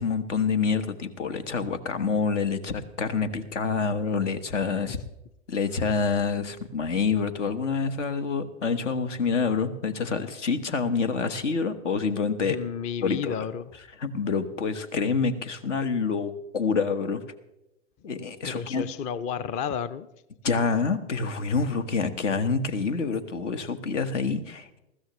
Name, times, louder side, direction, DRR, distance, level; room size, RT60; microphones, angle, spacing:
voice 1, 0.0-5.0 5.5-12.6 13.0-13.3 14.0-17.2 18.0-18.8 20.4-24.8, left 5 dB, 80° left, 10 dB, 1.4 m, -27 dB
voice 2, 12.4-13.7 18.4-20.1 21.6-21.7, left 7 dB, 20° left, 16 dB, 0.4 m, -32 dB
20.5 x 15.0 x 3.1 m, 0.89 s
hypercardioid pair, 105°, 36 cm